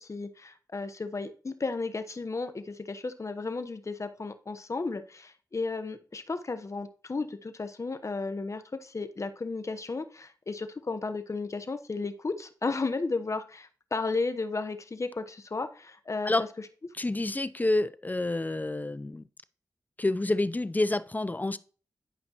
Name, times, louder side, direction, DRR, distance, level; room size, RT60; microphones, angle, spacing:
voice 1, 0.0-16.3, left 3 dB, 50° left, 10 dB, 1.0 m, -34 dB
voice 2, 17.0-19.2 20.0-21.6, left 2 dB, 25° left, 15 dB, 0.6 m, -28 dB
11.5 x 5.2 x 3.0 m, 0.40 s
cardioid pair, 40°, 7 cm